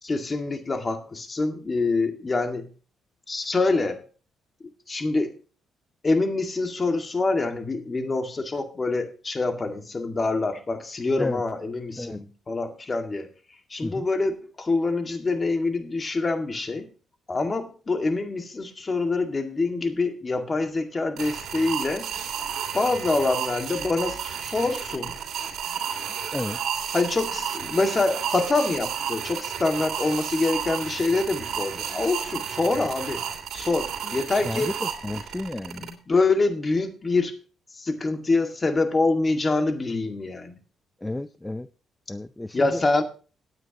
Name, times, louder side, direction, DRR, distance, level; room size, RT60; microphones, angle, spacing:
voice 1, 0.0-2.7 3.3-4.0 4.9-5.4 6.0-13.3 13.7-16.9 17.3-22.1 22.7-25.2 26.9-33.2 33.5-34.7 35.8-37.4 37.7-40.6 42.5-43.0, left 3 dB, 30° left, 2.0 m, -25 dB
sound 1, 21.2-35.9, right 8 dB, 70° right, 3.0 m, -32 dB
voice 2, 34.4-35.9 41.0-41.7 42.1-42.8, left 2 dB, 10° left, 0.6 m, -32 dB
17.5 x 9.2 x 2.9 m
cardioid pair, 90°, 0 cm